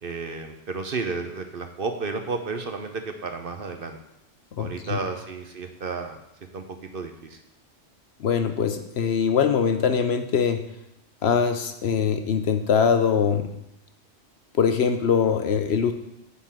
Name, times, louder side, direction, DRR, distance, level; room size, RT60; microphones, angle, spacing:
voice 1, 0.0-4.0 4.6-6.2 6.5-6.6 6.9-7.4, right 4 dB, 50° right, 6 dB, 0.9 m, -32 dB
voice 2, 4.6-5.0 8.2-10.6 11.2-13.5 14.5-15.9, left 7 dB, 60° left, 8 dB, 0.9 m, -22 dB
9.7 x 4.0 x 7.3 m, 0.83 s
omnidirectional pair, 1.3 m